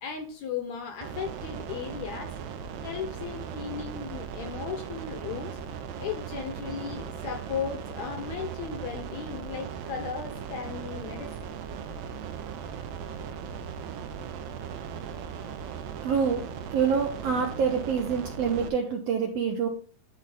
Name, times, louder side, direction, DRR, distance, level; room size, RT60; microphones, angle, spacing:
voice 1, 0.0-2.4 2.8-5.6 6.0-11.5, left 7 dB, 70° left, 1.8 m, -36 dB
sound 1, 1.0-18.7, right 7 dB, 90° right, 2.6 m, -38 dB
voice 2, 16.0-16.4 16.7-19.7, right 6 dB, 75° right, 1.5 m, -26 dB
11.0 x 4.2 x 3.8 m
omnidirectional pair, 4.0 m